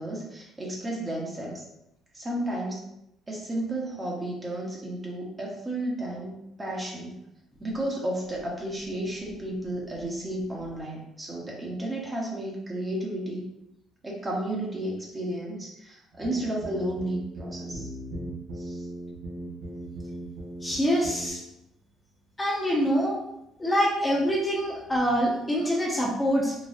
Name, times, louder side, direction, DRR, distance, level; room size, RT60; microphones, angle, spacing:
voice 1, 0.0-1.6 2.1-2.9 3.3-7.2 7.6-13.4 14.0-17.9 18.5-18.9, right 1 dB, 25° right, -3 dB, 1.0 m, -33 dB
sound 1, 16.1-20.8 21.0-21.3, right 1 dB, 85° right, 0.9 m, -38 dB
voice 2, 20.6-21.4 22.4-23.2 23.6-26.5, equal, 15° left, -4 dB, 1.0 m, -25 dB
4.0 x 2.4 x 2.5 m, 0.83 s
supercardioid pair, 75°, 0 cm